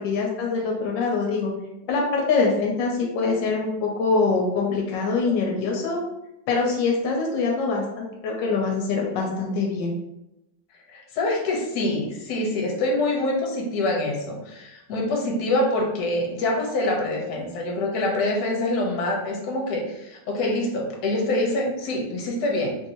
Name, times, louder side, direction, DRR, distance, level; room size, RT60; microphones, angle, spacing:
voice 1, 0.0-1.5 1.9-6.0 6.5-9.9, left 4 dB, 80° left, -1 dB, 1.3 m, -24 dB
voice 2, 10.9-22.8, left 2 dB, 65° left, -1 dB, 1.2 m, -25 dB
3.3 x 2.6 x 2.8 m, 0.90 s
omnidirectional pair, 2.0 m